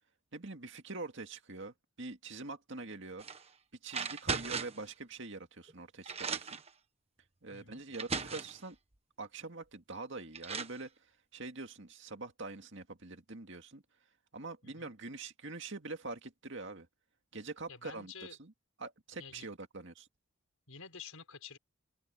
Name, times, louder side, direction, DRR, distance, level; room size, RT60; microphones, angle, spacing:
voice 1, 0.3-3.2 3.8-6.6 7.4-8.8 9.2-10.9 11.3-13.8 14.3-16.9 17.3-18.1 18.4-18.5 18.8-20.1, right 3 dB, 55° right, 2.2 m, -44 dB
sound 1, 3.2-3.4 3.9-4.9 5.7-5.8 6.1-6.7 7.5-7.6 7.9-8.6 9.9-10.0 10.3-10.8, right 5 dB, 30° right, 1.3 m, -37 dB
voice 2, 7.5-7.8 14.6-14.9 17.7-18.4 19.2-19.5 20.7-21.6, left 6 dB, 75° left, 5.8 m, -50 dB
open air
head